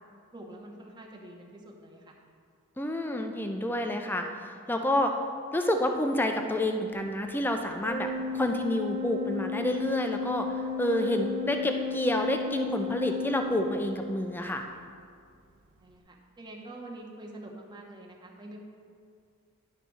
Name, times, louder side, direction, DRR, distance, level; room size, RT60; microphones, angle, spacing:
voice 1, 0.3-2.1 15.8-18.6, right 1 dB, 20° right, -1 dB, 1.0 m, -46 dB
voice 2, 2.8-4.3 4.7-5.1 5.5-8.1 8.3-10.5 10.8-14.6, left 1 dB, 10° left, 4 dB, 0.5 m, -28 dB
Organ, 7.8-14.4, left 5 dB, 90° right, 0.9 m, -34 dB
11.0 x 4.1 x 6.2 m, 2.2 s
head